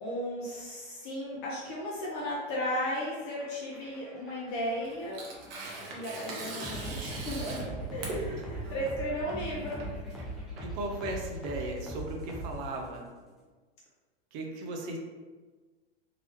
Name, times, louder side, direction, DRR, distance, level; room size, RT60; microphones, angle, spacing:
voice 1, 0.0-5.2 5.8-9.8, equal, 40° left, -4 dB, 0.8 m, -35 dB
sound 1, 3.2-13.0, right 1 dB, ahead, 0.3 m, -40 dB
Tearing, 4.5-11.3, right 2 dB, 65° right, 1.1 m, -41 dB
voice 2, 8.2-8.7 10.6-13.1 14.3-15.0, right 2 dB, 40° right, 1 dB, 0.7 m, -37 dB
3.8 x 3.0 x 3.0 m, 1.4 s
supercardioid pair, 145°, 32 cm